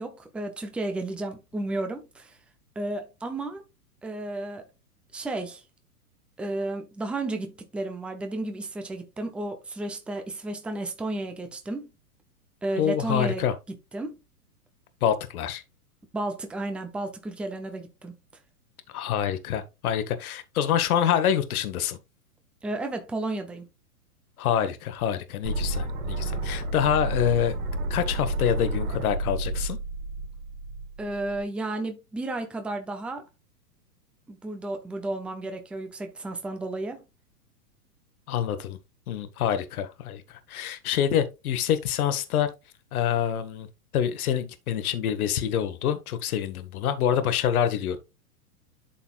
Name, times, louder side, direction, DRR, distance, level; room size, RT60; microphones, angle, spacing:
voice 1, 0.0-2.4 2.8-3.6 4.0-4.6 5.1-5.6 6.4-11.9 12.6-13.4 13.9-14.2 16.1-18.1 22.6-23.7 31.0-33.2 34.3-37.0, right 2 dB, ahead, 0.6 m, -32 dB
voice 2, 12.8-13.5 15.0-15.6 18.9-22.0 24.4-27.6 27.9-29.8 38.3-38.8 39.1-42.5 42.9-43.7 43.9-48.0, left 9 dB, 65° left, 1.3 m, -26 dB
sound 1, 25.4-31.4, right 2 dB, 70° right, 3.0 m, -31 dB
11.5 x 4.1 x 2.4 m
hypercardioid pair, 130°, 47 cm